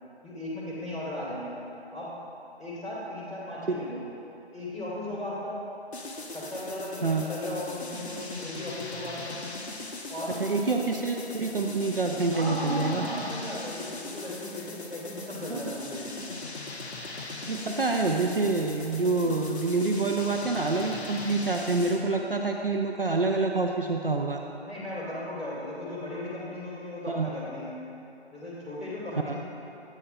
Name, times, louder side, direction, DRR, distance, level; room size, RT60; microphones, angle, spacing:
voice 1, 0.2-1.5 1.9-2.1 2.6-4.0 4.5-5.6 6.3-9.4 10.1-10.4 12.3-16.2 24.6-27.7 28.3-29.3, left 1 dB, 5° left, -24 dB, 1.7 m, -36 dB
sound 1, 5.9-22.1, left 2 dB, 75° left, 0.8 m, -39 dB
voice 2, 10.3-13.1 15.5-15.7 17.5-24.4 27.1-27.3 29.3-29.4, right 3 dB, 60° right, 2 dB, 0.4 m, -27 dB
8.9 x 8.4 x 2.3 m, 2.9 s
figure-of-eight pair, 175°, 33 cm